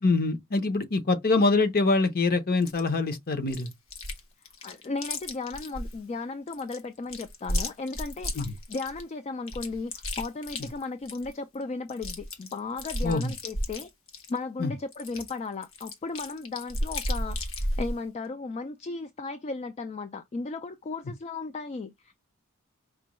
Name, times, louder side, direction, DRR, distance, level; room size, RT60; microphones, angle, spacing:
voice 1, 0.0-3.7 8.4-8.5 13.0-13.3 14.6-14.7, left 3 dB, 45° left, 0.8 m, -24 dB
Chewing mastication, 2.7-2.8 3.5-4.2 4.5-6.0 6.5-9.0 9.5-11.3 11.6-11.7 11.9-14.4 14.9-17.9, left 1 dB, 65° left, 1.2 m, -33 dB
voice 2, 4.6-13.9 14.3-22.1, left 3 dB, 30° left, 0.3 m, -35 dB
5.0 x 2.2 x 3.0 m
head